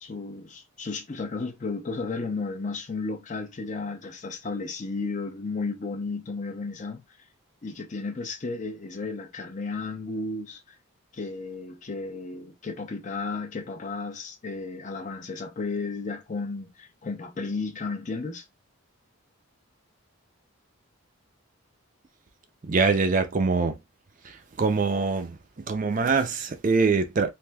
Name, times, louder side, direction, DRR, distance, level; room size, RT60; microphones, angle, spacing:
voice 1, 0.0-7.0 7.6-10.8 11.1-18.5, left 3 dB, 35° left, 0.5 m, -33 dB
voice 2, 22.7-23.7 24.6-25.3 25.7-27.3, right 4 dB, 35° right, 0.4 m, -23 dB
3.3 x 2.6 x 2.2 m
head